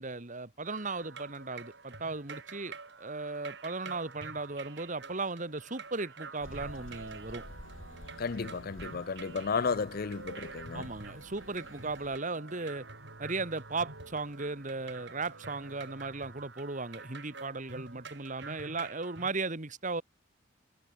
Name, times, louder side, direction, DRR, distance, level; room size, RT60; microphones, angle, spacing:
voice 1, 0.0-7.4 10.7-12.9 13.2-20.0, right 3 dB, 40° right, 2.0 m, -36 dB
sound 1, 0.6-19.3, right 4 dB, 60° right, 7.5 m, -48 dB
sound 2, 6.4-12.2, left 1 dB, 85° left, 4.1 m, -51 dB
sound 3, 6.4-16.2, right 2 dB, 85° right, 4.1 m, -52 dB
voice 2, 8.2-10.9, left 5 dB, 50° left, 0.5 m, -33 dB
head